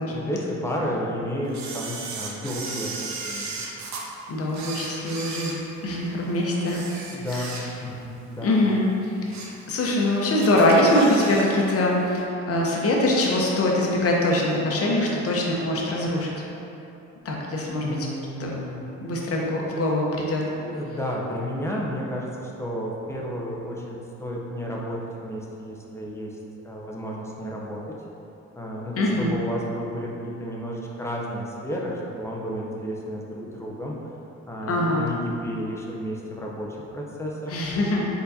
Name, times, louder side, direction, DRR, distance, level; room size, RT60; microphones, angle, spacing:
voice 1, 0.1-3.6 7.1-8.7 17.8-18.8 20.5-26.4 26.6-28.0 28.6-34.0 34.5-37.5, equal, 10° left, -3 dB, 0.7 m, -32 dB
Camera, 1.5-4.0 4.5-6.1 6.6-8.0 8.3-8.5 9.0-9.6 10.0-10.1 10.4-11.6 11.8-11.9, right 4 dB, 65° right, 0.6 m, -36 dB
voice 2, 4.3-5.5 5.8-6.9 7.3-7.5 8.4-9.4 9.7-16.3 17.2-18.0 18.4-18.5 19.0-20.4 29.0-29.3 34.7-35.1 37.5-38.1, left 1 dB, 50° left, -2 dB, 0.9 m, -23 dB
4.6 x 3.9 x 2.7 m, 2.9 s
cardioid pair, 90°, 30 cm